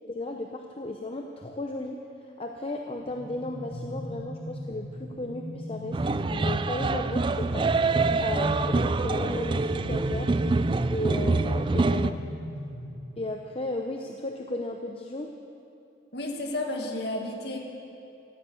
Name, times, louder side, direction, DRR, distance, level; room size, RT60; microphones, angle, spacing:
voice 1, 0.1-2.0 2.4-6.0 6.3-7.7 8.2-10.4 10.9-12.2 13.2-15.3, left 2 dB, 30° left, 3 dB, 0.7 m, -34 dB
sound 1, 3.0-13.5, left 1 dB, 80° left, 2.4 m, -38 dB
sound 2, 5.9-12.1, right 3 dB, 25° right, 0.3 m, -25 dB
voice 2, 16.1-17.6, left 1 dB, 60° left, 1 dB, 1.8 m, -32 dB
15.5 x 9.7 x 8.2 m, 2.6 s
head